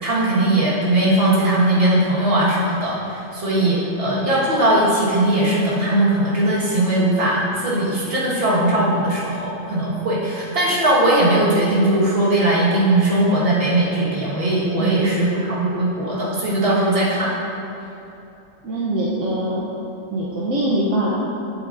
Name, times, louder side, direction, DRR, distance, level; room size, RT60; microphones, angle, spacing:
voice 1, 0.0-17.3, right 1 dB, 45° right, -7 dB, 1.8 m, -19 dB
voice 2, 14.8-15.3 18.6-19.6 20.1-21.1, right 1 dB, 70° right, -6 dB, 1.2 m, -23 dB
8.7 x 7.7 x 2.6 m, 2.9 s
omnidirectional pair, 1.4 m